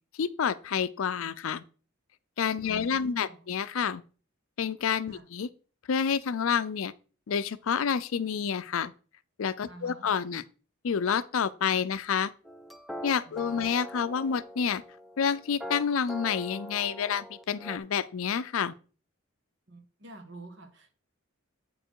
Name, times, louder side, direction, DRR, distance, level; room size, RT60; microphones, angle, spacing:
voice 1, 0.2-1.6 2.4-4.0 4.6-5.5 5.9-6.9 7.3-8.9 9.4-10.4 10.8-12.3 13.0-14.8 15.2-18.7, left 7 dB, 75° left, 0.5 m, -29 dB
voice 2, 2.6-3.5 5.1-5.2 9.7-10.1 13.3-13.7 19.7-20.9, right 2 dB, 55° right, 1.3 m, -48 dB
sound 1, 12.5-17.8, equal, ahead, 0.4 m, -42 dB
8.7 x 4.4 x 4.6 m
head